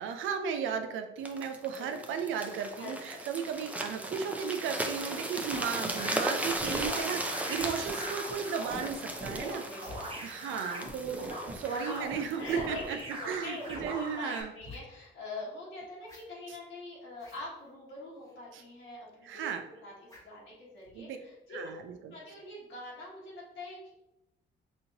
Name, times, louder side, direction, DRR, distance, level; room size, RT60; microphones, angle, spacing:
voice 1, 0.0-9.6 10.2-13.0 13.3-14.5 16.5-16.6 18.5-18.6 19.2-19.6 20.9-21.2 21.5-22.1, right 7 dB, 80° right, 6 dB, 0.4 m, -35 dB
sound 1, 1.2-13.1 13.7-13.9, right 1 dB, 5° right, 0.5 m, -37 dB
voice 2, 2.8-3.3 6.6-7.4 9.3-10.1 10.3-10.6 11.6-12.0 12.3-19.5 19.8-21.7 22.1-23.9, left 2 dB, 75° left, -7 dB, 1.4 m, -44 dB
sound 2, 5.5-14.4, right 1 dB, 25° right, 1.0 m, -41 dB
sound 3, 7.5-7.7 8.7-8.9 9.7-10.0 11.2-11.4 11.7-11.8 12.4-12.6 12.9-13.0 13.6-13.8 14.5-14.8 16.0-16.2 17.1-17.4 18.2-18.4 20.1-20.4 20.8-21.0, left 3 dB, 15° left, 1.3 m, -50 dB
4.2 x 2.7 x 2.8 m, 0.92 s
cardioid pair, 90°, 20 cm